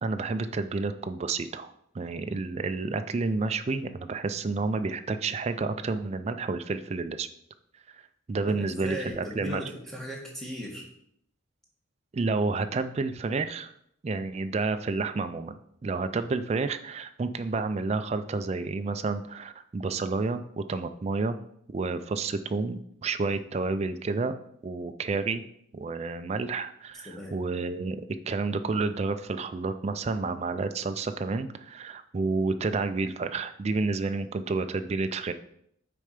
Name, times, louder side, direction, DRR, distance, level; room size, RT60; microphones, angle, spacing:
voice 1, 0.0-7.3 7.9-8.0 8.3-9.6 12.1-13.7 14.0-21.4 21.7-24.3 24.6-25.4 25.7-28.0 28.3-35.3, right 3 dB, 30° right, 9 dB, 0.3 m, -30 dB
voice 2, 8.4-10.8 27.0-27.3, equal, ahead, -2 dB, 1.5 m, -37 dB
6.6 x 4.3 x 5.0 m, 0.72 s
head